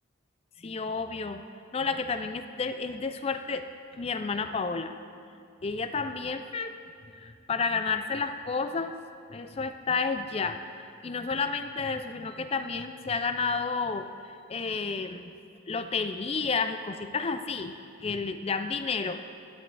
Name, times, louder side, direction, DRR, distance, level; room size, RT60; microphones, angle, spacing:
voice 1, 0.6-1.4 1.7-3.7 3.9-5.0 5.6-6.7 7.2-9.0 9.3-15.2 15.7-19.2, left 4 dB, 30° left, 9 dB, 0.4 m, -31 dB
12.5 x 11.0 x 3.3 m, 2.4 s
head